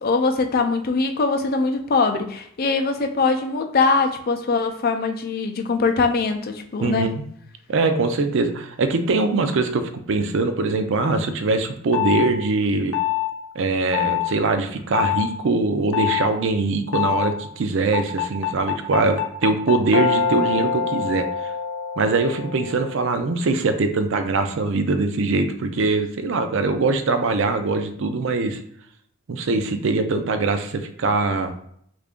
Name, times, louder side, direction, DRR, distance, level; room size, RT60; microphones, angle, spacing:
voice 1, 0.0-7.1, left 4 dB, 45° left, 6 dB, 0.4 m, -22 dB
voice 2, 6.8-7.2 7.7-12.9 13.6-21.3 22.0-28.6 29.3-31.7, right 3 dB, 60° right, 8 dB, 0.5 m, -22 dB
sound 1, 11.9-12.3 12.9-13.3 13.9-14.3 14.9-15.3 15.9-16.3 16.9-17.3 17.9-23.0, left 9 dB, 85° left, 0.7 m, -24 dB
3.3 x 2.5 x 3.6 m, 0.68 s
head